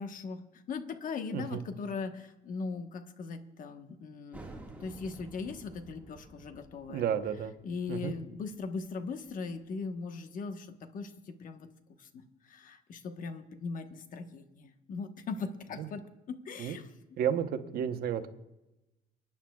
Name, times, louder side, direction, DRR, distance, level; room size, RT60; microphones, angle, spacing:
voice 1, 0.0-4.4 4.8-7.1 7.6-11.7 12.0-16.9, left 4 dB, 50° left, 7 dB, 1.2 m, -39 dB
sound 1, 4.3-9.6, right 2 dB, 10° right, 1.8 m, -51 dB
voice 2, 6.9-7.5 7.9-8.1 15.8-15.9 16.6-16.8 17.2-18.3, right 9 dB, 65° right, 8 dB, 1.0 m, -32 dB
30.0 x 10.0 x 2.4 m, 0.96 s
cardioid pair, 110°, 17 cm